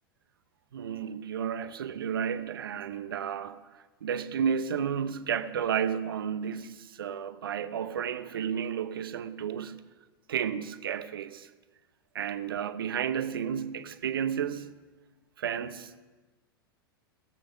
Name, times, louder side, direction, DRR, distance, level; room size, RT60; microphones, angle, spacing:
voice 1, 0.7-9.9 10.3-11.5 12.1-14.8 15.4-16.0, right 8 dB, 70° right, 0.7 m, -32 dB
19.0 x 7.8 x 5.1 m
figure-of-eight pair, 90°, 13 cm